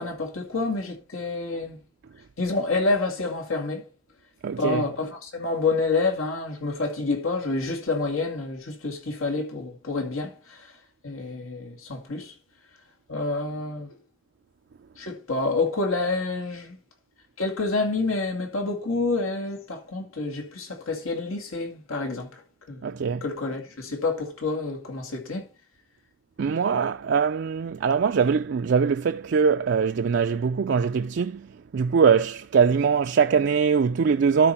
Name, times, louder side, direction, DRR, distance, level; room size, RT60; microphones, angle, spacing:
voice 1, 0.0-1.8 2.4-3.8 4.6-10.6 11.0-12.3 13.1-13.9 15.0-16.8 17.4-22.4 22.7-25.4, left 3 dB, 85° left, 2.2 m, -28 dB
voice 2, 4.4-4.8 22.8-23.2 26.4-31.4 31.7-34.5, right 6 dB, 55° right, 0.3 m, -22 dB
12.5 x 4.8 x 4.3 m
head